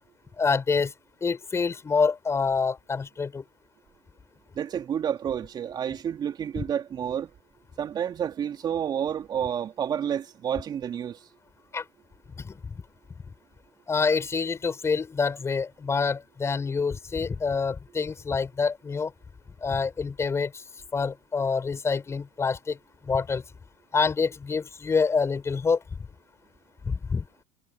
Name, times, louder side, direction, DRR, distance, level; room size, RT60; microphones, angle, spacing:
voice 1, 0.4-0.9 1.2-3.4 11.7-11.8 12.4-12.7 13.9-19.1 19.6-20.6 20.9-22.8 23.0-23.4 23.9-25.8 26.9-27.2, left 5 dB, 20° left, 5.5 m, -26 dB
voice 2, 4.5-7.3 7.8-11.3, right 9 dB, 35° right, 2.9 m, -30 dB
hypercardioid pair, 80°, 13 cm